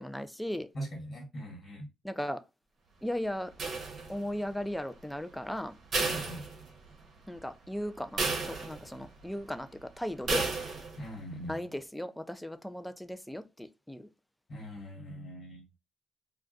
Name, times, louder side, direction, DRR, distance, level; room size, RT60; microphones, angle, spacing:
voice 1, 0.0-0.7 2.0-2.4 3.0-3.5 4.1-5.8 7.3-10.5 11.5-14.1, left 1 dB, 5° left, 0.3 m, -37 dB
voice 2, 0.7-1.9 6.0-6.4 11.0-11.5 14.5-15.6, equal, 50° left, 1.5 m, -41 dB
sound 1, 3.6-4.4 5.9-7.1 7.4-7.5 8.2-9.1 10.3-11.1, right 4 dB, 55° right, 0.8 m, -33 dB
2.3 x 2.2 x 3.7 m
cardioid pair, 90°, 0 cm